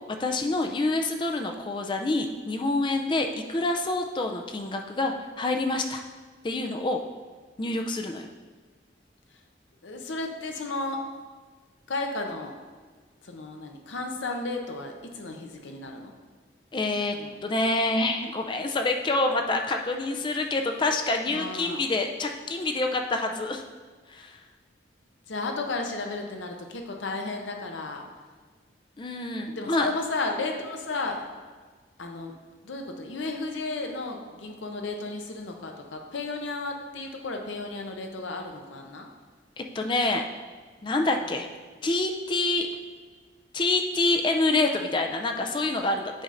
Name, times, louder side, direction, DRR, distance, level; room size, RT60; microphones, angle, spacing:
voice 1, 0.2-6.0 6.4-7.0 7.6-8.3 16.7-17.1 17.4-23.6 24.1-24.4 29.0-29.9 39.6-40.2 40.8-41.5 41.8-42.7 43.5-46.2, left 2 dB, 25° left, 4 dB, 0.3 m, -27 dB
voice 2, 9.8-11.0 11.9-12.5 13.2-16.1 17.1-17.3 21.3-21.8 25.3-28.0 29.5-31.2 32.0-32.3 32.6-39.1, left 3 dB, 85° left, 3 dB, 0.7 m, -33 dB
8.8 x 5.5 x 2.5 m, 1.5 s
head